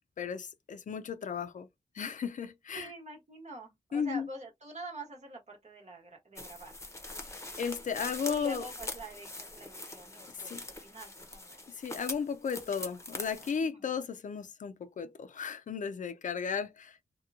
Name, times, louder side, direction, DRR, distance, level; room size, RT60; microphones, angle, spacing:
voice 1, 0.2-1.7 2.0-2.9 3.9-4.3 7.6-8.6 10.4-10.6 11.8-17.2, left 6 dB, 80° left, 0.4 m, -35 dB
voice 2, 2.7-6.7 8.3-11.6 13.6-13.9, right 1 dB, 60° right, 1.2 m, -46 dB
sound 1, 6.4-13.6, left 2 dB, 20° left, 0.6 m, -43 dB
2.8 x 2.2 x 2.4 m
wide cardioid pair, 60°, 13 cm